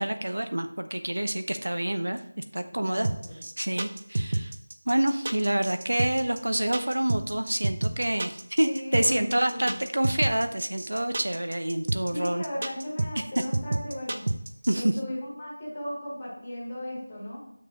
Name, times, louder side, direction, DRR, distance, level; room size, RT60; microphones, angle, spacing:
voice 1, 0.0-3.1 3.6-4.5 4.9-12.4 14.7-14.9, right 1 dB, 70° right, 8 dB, 0.8 m, -27 dB
voice 2, 2.6-3.4 8.6-9.8 12.1-14.3 14.7-17.4, left 1 dB, 10° left, -5 dB, 1.4 m, -36 dB
sound 1, 3.0-14.7, right 2 dB, 25° right, 0.4 m, -29 dB
6.9 x 6.5 x 3.6 m, 0.75 s
figure-of-eight pair, 180°, 0 cm